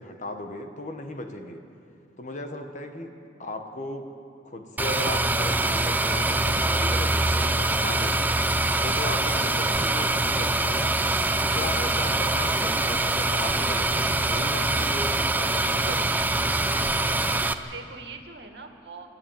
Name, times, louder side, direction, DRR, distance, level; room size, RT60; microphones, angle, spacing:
voice 1, 0.0-1.6 2.2-3.1 3.4-4.1 4.4-8.4 8.8-11.0 11.4-16.4, left 2 dB, 45° left, 5 dB, 1.4 m, -36 dB
sound 1, 4.8-17.5, right 2 dB, 10° right, 0.6 m, -24 dB
voice 2, 15.6-16.2 16.7-19.1, right 4 dB, 65° right, 4 dB, 2.1 m, -43 dB
27.5 x 12.0 x 9.1 m, 2.5 s
head